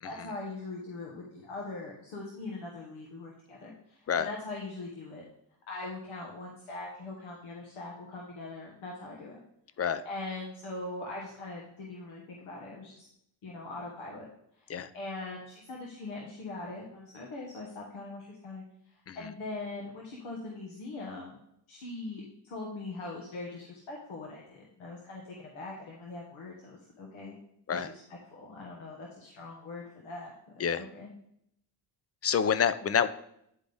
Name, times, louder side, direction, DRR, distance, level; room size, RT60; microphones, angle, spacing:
voice 1, 0.0-5.2 5.7-9.4 10.0-13.1 13.4-14.2 14.5-21.4 21.7-27.4 27.7-30.3 30.8-31.1, left 2 dB, 75° left, -2 dB, 1.4 m, -41 dB
voice 2, 32.2-33.1, left 7 dB, 30° left, 13 dB, 0.5 m, -27 dB
9.9 x 3.9 x 3.4 m, 0.74 s
supercardioid pair, 65°, 49 cm